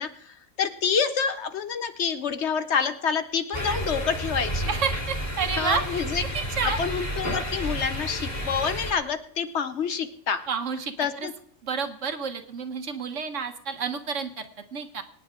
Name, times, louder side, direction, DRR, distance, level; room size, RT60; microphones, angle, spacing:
voice 1, 0.0-4.7 5.6-6.2 6.8-10.4 11.0-11.3, left 6 dB, 60° left, 10 dB, 1.0 m, -27 dB
sound 1, 3.5-8.9, equal, 30° left, 2.7 m, -31 dB
voice 2, 4.7-6.0 6.3-6.8 10.5-11.3 11.6-15.0, right 5 dB, 65° right, 7 dB, 1.5 m, -30 dB
24.5 x 9.6 x 3.7 m, 0.65 s
omnidirectional pair, 1.4 m